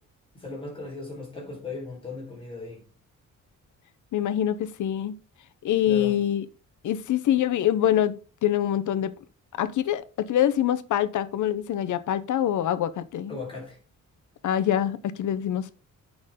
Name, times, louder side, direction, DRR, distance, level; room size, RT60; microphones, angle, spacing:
voice 1, 0.3-2.9 5.8-6.2 13.3-13.8, left 3 dB, 15° left, 4.3 m, -37 dB
voice 2, 4.1-5.1 5.6-6.4 6.8-8.1 8.4-9.1 9.6-13.4 14.4-15.7, left 11 dB, 75° left, 0.8 m, -25 dB
8.7 x 6.0 x 3.7 m
wide cardioid pair, 180°, 31 cm